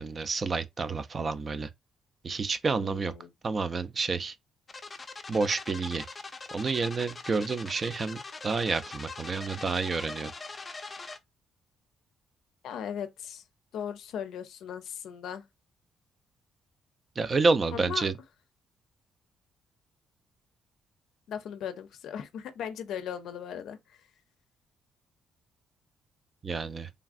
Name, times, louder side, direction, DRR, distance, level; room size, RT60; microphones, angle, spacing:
voice 1, 0.0-1.7 2.2-3.1 3.4-4.3 5.3-6.1 6.5-10.3 17.2-18.1 26.4-26.9, right 4 dB, 35° right, 0.4 m, -29 dB
voice 2, 2.8-3.3 12.6-13.4 13.7-15.4 17.7-18.1 21.3-24.0, left 8 dB, 80° left, 0.5 m, -38 dB
sound 1, 4.7-11.2, left 3 dB, 30° left, 0.5 m, -42 dB
3.3 x 2.4 x 2.4 m
cardioid pair, 90°, 0 cm